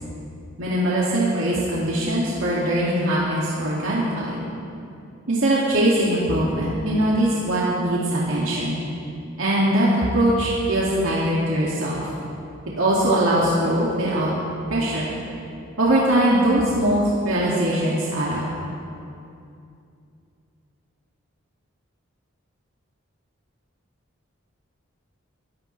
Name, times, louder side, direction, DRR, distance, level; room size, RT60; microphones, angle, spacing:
voice 1, 0.6-4.4 5.3-8.8 9.4-12.1 12.8-14.3 14.7-15.1 15.8-18.4, right 1 dB, 80° right, -6 dB, 2.4 m, -21 dB
24.5 x 15.0 x 3.3 m, 2.6 s
head